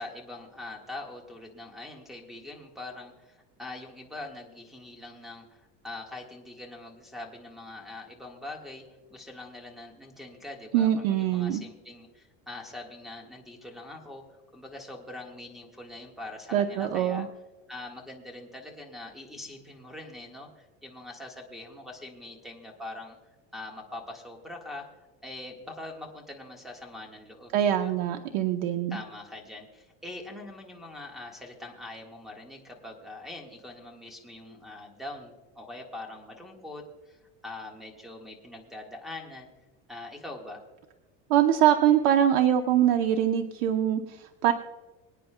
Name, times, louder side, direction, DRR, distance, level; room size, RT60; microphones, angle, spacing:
voice 1, 0.0-8.8 9.1-17.2 17.7-23.2 23.5-27.9 28.9-39.5 39.9-40.6, left 2 dB, ahead, 1 dB, 1.6 m, -43 dB
voice 2, 10.7-11.6 16.5-17.3 27.5-29.0 41.3-44.5, right 10 dB, 80° right, 6 dB, 1.0 m, -23 dB
25.5 x 9.3 x 2.3 m, 1.2 s
cardioid pair, 170°, 30 cm